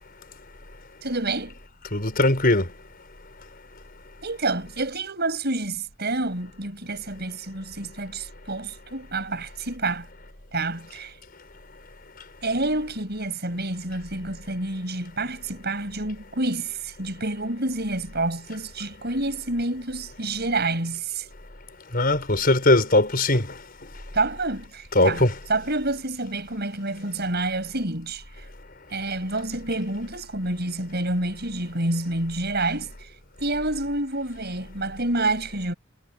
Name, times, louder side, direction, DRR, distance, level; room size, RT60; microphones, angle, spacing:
voice 1, 1.0-1.6 4.2-10.1 10.5-11.1 12.4-21.3 24.1-28.2 28.9-32.9 33.4-35.7, right 2 dB, 50° right, 8.0 m, -28 dB
voice 2, 1.9-2.7 21.9-23.5 24.9-25.3, left 2 dB, 45° left, 5.0 m, -20 dB
head